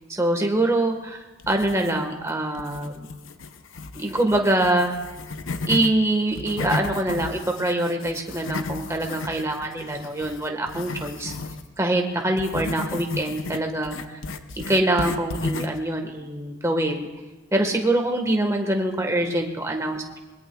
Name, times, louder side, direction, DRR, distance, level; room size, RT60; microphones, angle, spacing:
voice 1, 0.1-3.1 4.0-5.0 5.7-11.3 11.8-14.2 14.7-17.1 17.5-20.2, right 1 dB, 15° right, 2 dB, 1.4 m, -24 dB
sound 1, 1.4-2.2 2.6-5.9 6.3-11.7 12.4-15.8, left 3 dB, 65° left, 0.7 m, -33 dB
23.5 x 21.0 x 2.3 m, 1.1 s
head